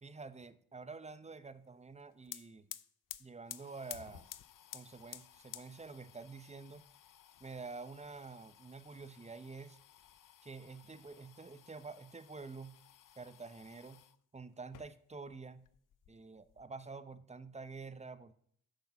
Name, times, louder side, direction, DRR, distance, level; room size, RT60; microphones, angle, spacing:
voice 1, 0.0-2.7 3.2-4.3 4.7-6.9 7.4-9.8 10.4-12.8 13.2-14.0 14.3-15.7 16.1-18.3, right 4 dB, 20° right, 14 dB, 0.7 m, -48 dB
sound 1, 1.9-2.0 2.2-14.2 14.6-15.4 15.6-16.6, left 11 dB, 55° left, 0.6 m, -54 dB
6.5 x 6.1 x 7.1 m, 0.64 s
cardioid pair, 50°, 37 cm